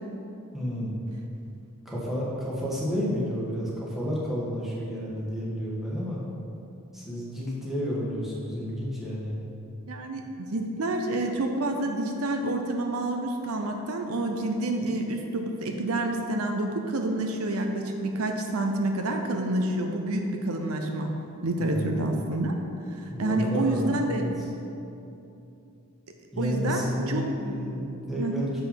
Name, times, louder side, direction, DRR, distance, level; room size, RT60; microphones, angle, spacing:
voice 1, 0.5-1.0 1.8-6.2 6.9-9.4 21.6-22.1 23.1-24.5 26.3-28.6, equal, ahead, -7 dB, 1.5 m, -31 dB
voice 2, 9.9-21.1 21.4-22.5 22.9-24.2 26.4-27.2 28.2-28.5, right 2 dB, 70° right, 3 dB, 0.6 m, -28 dB
7.0 x 5.6 x 5.7 m, 2.8 s
head